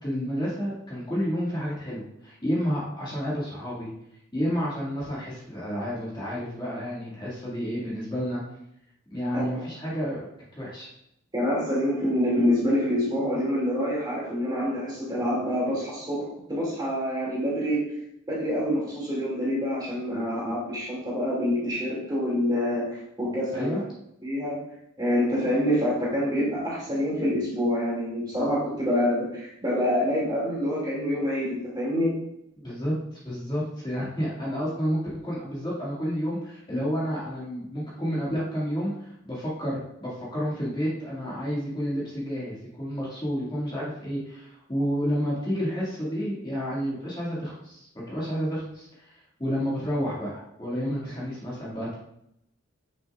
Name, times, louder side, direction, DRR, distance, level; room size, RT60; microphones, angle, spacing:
voice 1, 0.0-3.9 4.3-8.4 9.1-10.9 23.5-23.8 32.6-32.9 33.2-51.9, equal, 20° left, -7 dB, 2.1 m, -30 dB
voice 2, 11.3-17.9 18.3-23.8 24.2-24.6 25.0-32.2, equal, 20° right, -5 dB, 2.4 m, -26 dB
9.6 x 6.5 x 2.4 m, 0.78 s
head